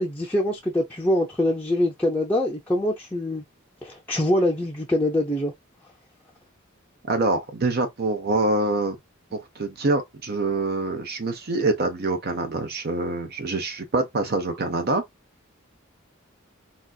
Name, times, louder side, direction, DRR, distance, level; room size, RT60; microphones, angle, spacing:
voice 1, 0.0-3.4 3.8-5.5, left 1 dB, 10° left, 0.5 m, -24 dB
voice 2, 7.1-9.0 9.3-15.0, right 2 dB, 50° right, 0.7 m, -25 dB
4.0 x 2.4 x 2.3 m
head